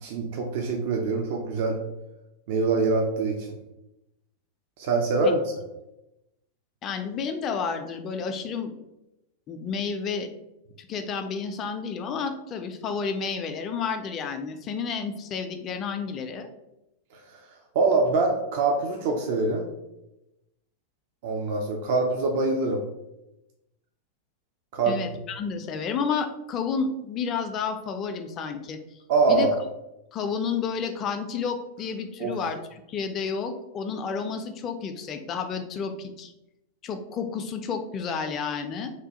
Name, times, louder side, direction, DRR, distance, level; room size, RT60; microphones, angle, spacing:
voice 1, 0.0-1.8 2.5-3.5 4.8-5.5 17.1-17.4 17.7-19.7 21.2-22.8 24.7-25.0 29.1-29.6 32.2-32.4, right 3 dB, 50° right, 2 dB, 0.4 m, -24 dB
voice 2, 6.8-8.7 9.5-10.3 10.8-16.5 24.9-28.8 29.3-29.5 30.1-32.6 32.9-36.3 36.8-38.9, left 5 dB, 30° left, 7 dB, 0.3 m, -31 dB
3.1 x 2.2 x 2.7 m, 0.91 s
figure-of-eight pair, 90°, 0 cm